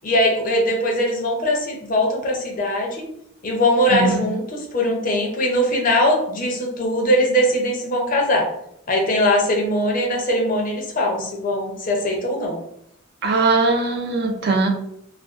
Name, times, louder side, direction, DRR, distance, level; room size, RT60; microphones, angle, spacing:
voice 1, 0.0-3.0 3.4-8.5 8.9-12.6, left 1 dB, 40° left, 0 dB, 0.5 m, -21 dB
voice 2, 3.9-4.3 13.2-14.7, right 3 dB, 50° right, 3 dB, 0.4 m, -20 dB
2.4 x 2.2 x 2.4 m, 0.74 s
head